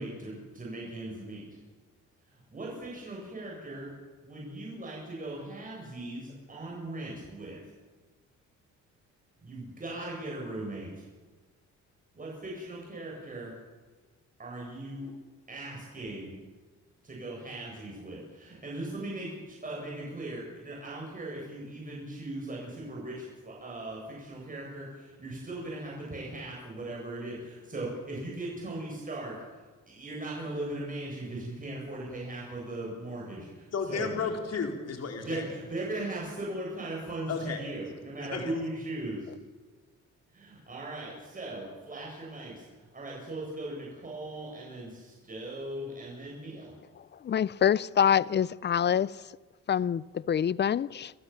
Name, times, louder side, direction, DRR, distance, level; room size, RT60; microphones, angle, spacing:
voice 1, 0.0-1.4 2.5-3.9 4.2-7.6 9.4-10.9 12.1-13.5 14.4-15.1 15.5-16.3 17.0-29.3 29.9-34.1 35.1-39.3 40.3-42.7 42.9-46.7, right 1 dB, 25° right, 7.9 m, -38 dB
voice 2, 33.7-35.4 37.3-37.6 38.3-38.5, left 5 dB, 55° left, 4.5 m, -33 dB
voice 3, 47.2-49.1 49.7-51.1, left 8 dB, 35° left, 0.6 m, -26 dB
27.5 x 15.0 x 7.4 m
cardioid pair, 90°, 30 cm